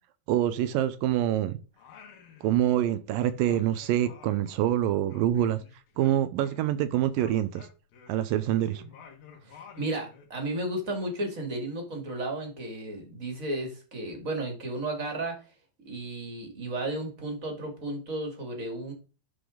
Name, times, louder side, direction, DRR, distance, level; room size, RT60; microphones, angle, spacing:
voice 1, 0.3-1.6 2.4-5.6 6.0-7.7 8.1-8.8, right 12 dB, 80° right, 2.2 m, -26 dB
Singing, 1.7-2.9 3.2-6.8 7.1-10.3, left 6 dB, 75° left, 3.3 m, -52 dB
voice 2, 9.5-15.4 15.9-18.9, right 1 dB, 25° right, 2.1 m, -33 dB
11.0 x 5.1 x 3.8 m
omnidirectional pair, 4.3 m